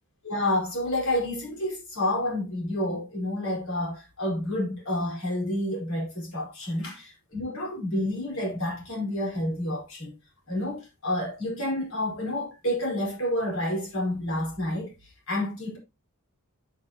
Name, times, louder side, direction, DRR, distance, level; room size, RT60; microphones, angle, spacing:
voice 1, 0.2-10.1 10.5-14.9 15.3-15.8, left 1 dB, 65° left, 4.8 m, -29 dB
8.5 x 8.3 x 2.9 m
head